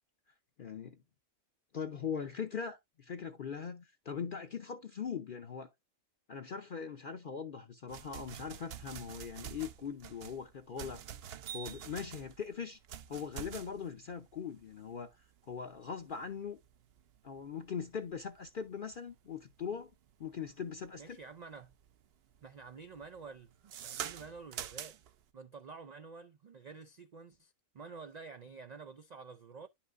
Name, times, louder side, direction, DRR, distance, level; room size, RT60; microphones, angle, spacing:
voice 1, 0.6-1.0 1.7-5.7 6.3-11.0 11.5-12.8 13.1-15.2 15.5-16.6 17.2-19.9 20.2-21.2, left 6 dB, 50° left, 0.7 m, -41 dB
sound 1, 7.9-21.2 21.6-22.1 22.3-25.2, right 9 dB, 60° right, 0.7 m, -47 dB
voice 2, 21.0-21.7 22.4-25.0 25.3-29.7, right 5 dB, 80° right, 0.3 m, -50 dB
10.0 x 5.7 x 2.4 m
omnidirectional pair, 1.4 m